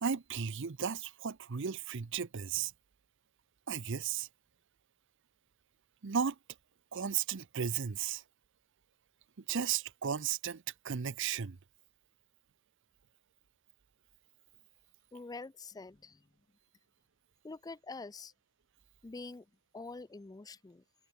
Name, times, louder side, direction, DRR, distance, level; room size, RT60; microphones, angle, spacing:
voice 1, 0.0-2.7 3.7-4.3 6.0-6.4 6.9-8.2 9.5-11.6, right 7 dB, 55° right, 0.6 m, -35 dB
voice 2, 15.1-16.3 17.4-18.3 19.0-19.5 19.7-20.8, left 3 dB, 15° left, 0.4 m, -46 dB
head